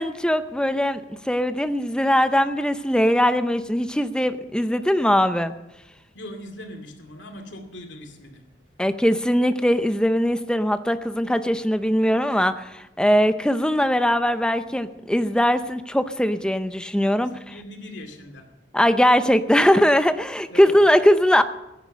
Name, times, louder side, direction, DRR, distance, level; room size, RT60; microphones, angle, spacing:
voice 1, 0.0-5.5 8.8-17.3 18.7-21.4, equal, 5° left, 11 dB, 0.6 m, -20 dB
voice 2, 6.1-8.4 17.2-18.5 20.5-20.8, left 1 dB, 70° left, 5 dB, 2.4 m, -40 dB
15.0 x 10.5 x 6.6 m, 0.94 s
head